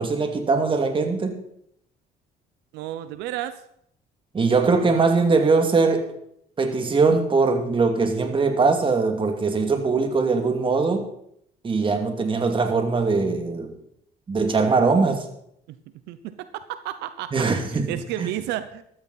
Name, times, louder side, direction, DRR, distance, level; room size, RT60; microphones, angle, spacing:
voice 1, 0.0-1.4 4.3-6.1 6.6-11.0 11.6-13.7 14.3-15.3 17.3-18.3, right 4 dB, 30° right, 5 dB, 2.4 m, -21 dB
voice 2, 2.7-3.6 15.7-15.8 16.1-18.8, right 12 dB, 90° right, 12 dB, 0.8 m, -32 dB
14.5 x 13.0 x 4.2 m, 0.71 s
cardioid pair, 110°, 17 cm